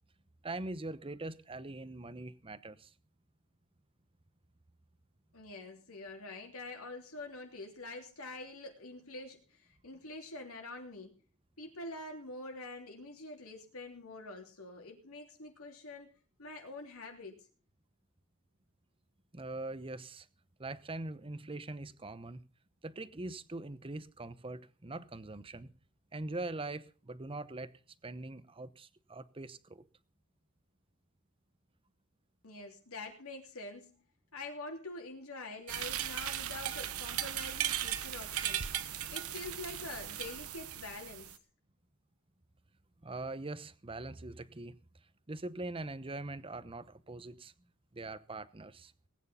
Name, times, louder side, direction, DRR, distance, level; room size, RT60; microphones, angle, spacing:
voice 1, 0.4-2.9 19.3-20.3 20.6-22.4 22.8-25.7 26.1-27.7 28.0-29.8 43.0-44.8 45.3-47.5 47.9-48.9, right 2 dB, 25° right, 0.9 m, -42 dB
voice 2, 5.3-11.2 11.6-16.1 16.4-17.5 32.4-34.0 34.3-38.8 39.1-41.3, left 2 dB, 70° left, 3.2 m, -46 dB
sound 1, 35.7-41.4, right 11 dB, 80° right, 1.3 m, -37 dB
19.5 x 9.6 x 5.5 m
head